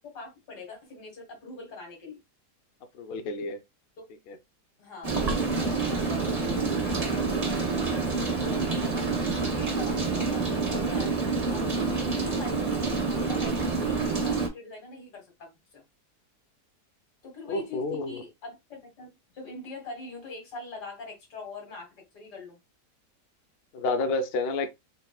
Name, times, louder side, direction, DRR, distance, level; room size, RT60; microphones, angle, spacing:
voice 1, 0.1-2.2 4.8-9.1 9.5-11.2 11.5-15.8 17.2-22.6, left 3 dB, 75° left, 2.3 m, -43 dB
voice 2, 3.0-3.6 4.3-4.4 10.2-10.5 17.5-18.2 23.7-24.7, left 3 dB, 55° left, 0.6 m, -30 dB
Rain, 5.0-14.5, right 4 dB, 25° right, 1.0 m, -27 dB
4.0 x 3.6 x 2.3 m
omnidirectional pair, 1.8 m